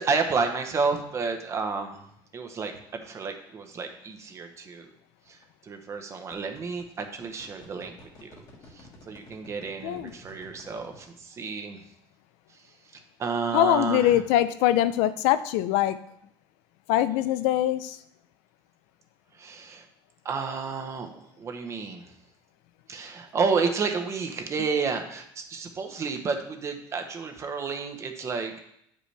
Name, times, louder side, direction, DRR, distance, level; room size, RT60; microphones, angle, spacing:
voice 1, 0.0-2.0 2.3-2.7 3.0-4.9 5.3-7.9 8.2-8.4 8.7-11.8 13.2-14.2 19.3-19.8 20.2-22.1 22.9-28.6, right 5 dB, 25° right, 5 dB, 0.8 m, -31 dB
sound 1, 2.7-2.9 5.2-5.4 5.9-11.0, left 1 dB, 35° left, 1.5 m, -51 dB
voice 2, 13.5-16.0 16.9-18.0, left 12 dB, 85° left, 12 dB, 0.5 m, -23 dB
8.8 x 5.3 x 3.3 m, 0.74 s
cardioid pair, 155°, 11 cm